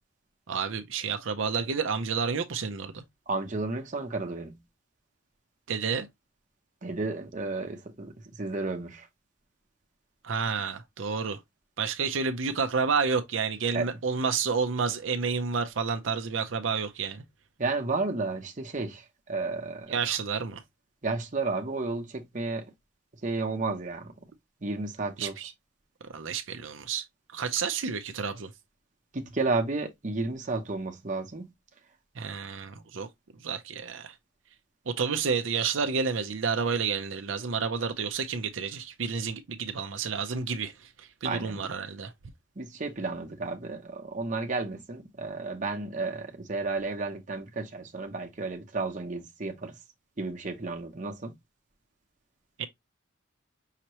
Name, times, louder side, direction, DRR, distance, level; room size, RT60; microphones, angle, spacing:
voice 1, 0.5-3.0 5.7-6.1 10.2-11.4 11.8-17.2 19.9-20.6 25.2-25.5 26.1-27.1 27.3-28.5 32.2-33.1 33.4-34.2 34.9-42.1 52.6-52.7, right 5 dB, 75° right, 0.6 m, -30 dB
voice 2, 3.3-4.6 6.8-8.1 8.4-9.1 13.7-13.8 17.6-19.9 21.0-22.7 23.2-24.1 24.6-25.3 29.1-31.5 41.2-41.6 42.6-49.8 50.2-51.3, right 3 dB, 40° right, 0.9 m, -32 dB
5.7 x 2.9 x 3.0 m
head